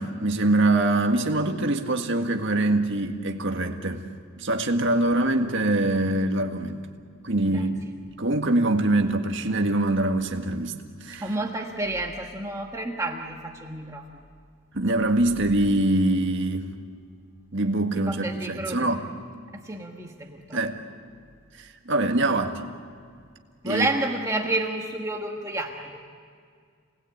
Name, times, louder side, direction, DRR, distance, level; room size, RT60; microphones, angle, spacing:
voice 1, 0.0-4.0 4.4-6.9 7.2-7.8 8.2-11.3 14.7-16.7 17.5-19.1 20.5-20.8 21.6-22.6 23.6-23.9, right 2 dB, 60° right, 4 dB, 1.8 m, -24 dB
voice 2, 11.2-14.1 17.9-18.9 19.5-20.6 23.6-26.0, right 2 dB, 15° right, 1 dB, 1.4 m, -30 dB
28.5 x 20.0 x 8.7 m, 2.1 s
head